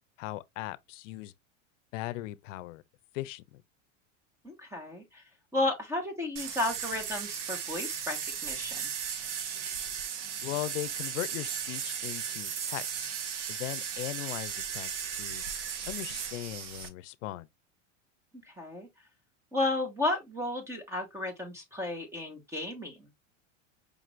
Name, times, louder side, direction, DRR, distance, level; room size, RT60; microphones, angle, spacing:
voice 1, 0.2-1.3 1.9-2.8 3.1-3.6 10.4-13.1 13.5-15.4 15.9-17.5, left 17 dB, 80° left, 0.6 m, -38 dB
voice 2, 4.4-5.2 5.5-8.9 18.3-18.9 19.5-23.1, left 2 dB, 5° right, 0.9 m, -33 dB
sound 1, 6.4-16.9, right 7 dB, 65° right, 1.0 m, -36 dB
5.1 x 2.5 x 3.1 m
supercardioid pair, 160°, 37 cm